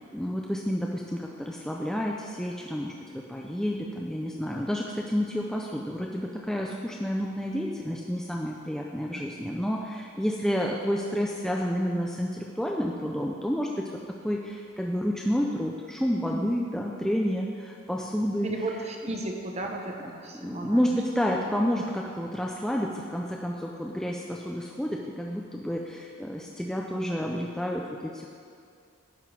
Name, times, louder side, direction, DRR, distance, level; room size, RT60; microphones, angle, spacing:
voice 1, 0.1-13.9 14.2-18.5 20.4-28.3, equal, 5° left, -1 dB, 0.4 m, -30 dB
voice 2, 18.4-21.0 21.3-21.4, right 2 dB, 30° right, 1 dB, 0.7 m, -34 dB
10.5 x 6.0 x 4.6 m, 2.4 s
head